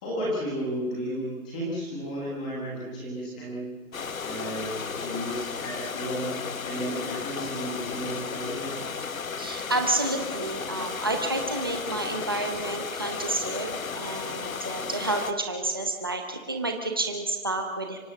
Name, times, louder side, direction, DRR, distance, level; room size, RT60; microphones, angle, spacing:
voice 1, 0.0-3.7 4.2-6.3 6.6-9.0, equal, 5° left, -6 dB, 1.3 m, -33 dB
sound 1, 3.9-15.3, left 6 dB, 70° left, 1.5 m, -34 dB
voice 2, 9.4-18.0, right 2 dB, 15° right, 3 dB, 0.8 m, -30 dB
25.0 x 17.0 x 7.2 m, 1.4 s
hypercardioid pair, 180°, 43 cm